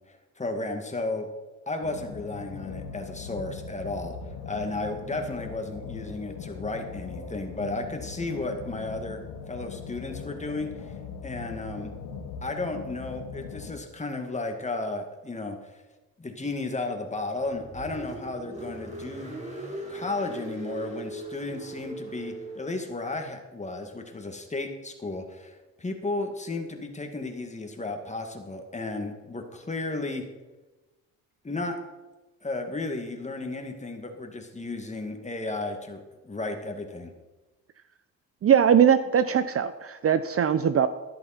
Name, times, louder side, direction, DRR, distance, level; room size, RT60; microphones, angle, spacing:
voice 1, 0.4-1.3 1.7-4.2 4.4-9.2 9.5-10.9 11.2-11.9 12.4-15.7 16.2-19.3 19.9-30.2 31.4-31.8 32.4-37.1, left 2 dB, 20° left, 4 dB, 2.1 m, -33 dB
sound 1, 1.8-13.8, left 6 dB, 90° left, 1.8 m, -40 dB
Car, 17.3-22.8, right 2 dB, 20° right, 3.9 m, -39 dB
voice 2, 38.4-40.9, right 8 dB, 40° right, 13 dB, 0.6 m, -21 dB
13.5 x 11.0 x 4.4 m, 1.1 s
cardioid pair, 85°, 36 cm